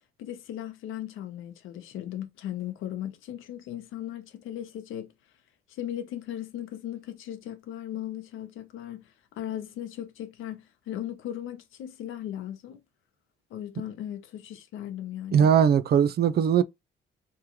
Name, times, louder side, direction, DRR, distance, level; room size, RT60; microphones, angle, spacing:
voice 1, 0.2-5.1 5.7-9.1 9.4-12.8 13.5-15.5, left 11 dB, 85° left, 0.9 m, -37 dB
voice 2, 15.3-16.6, right 8 dB, 55° right, 0.4 m, -20 dB
3.6 x 3.0 x 3.0 m
cardioid pair, 90°, 20 cm